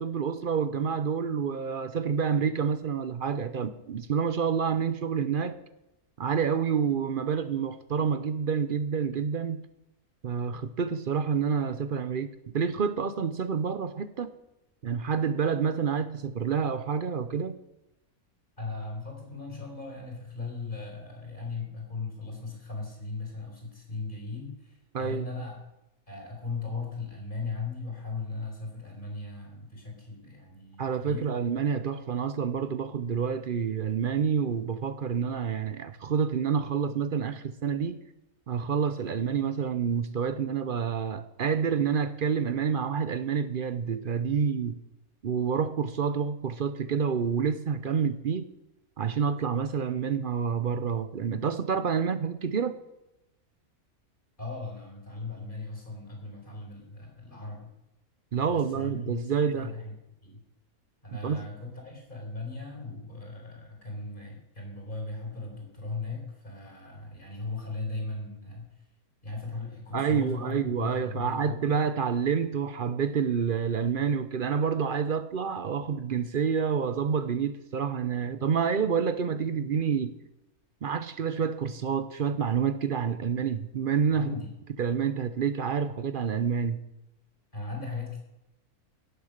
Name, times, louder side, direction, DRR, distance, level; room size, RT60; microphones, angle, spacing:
voice 1, 0.0-5.6 6.2-9.7 10.2-14.3 14.8-17.6 24.9-25.3 30.8-38.0 38.5-44.8 45.2-48.5 49.0-52.8 58.3-59.7 61.2-61.4 69.9-80.2 80.8-84.3 84.8-86.8, right 6 dB, 55° right, 0.6 m, -28 dB
voice 2, 18.6-25.6 26.1-31.3 54.4-57.7 58.5-59.9 60.2-60.4 61.0-68.7 69.2-71.8 84.1-84.5 87.5-88.2, left 3 dB, 35° left, 4.4 m, -38 dB
16.5 x 7.0 x 6.5 m
omnidirectional pair, 1.6 m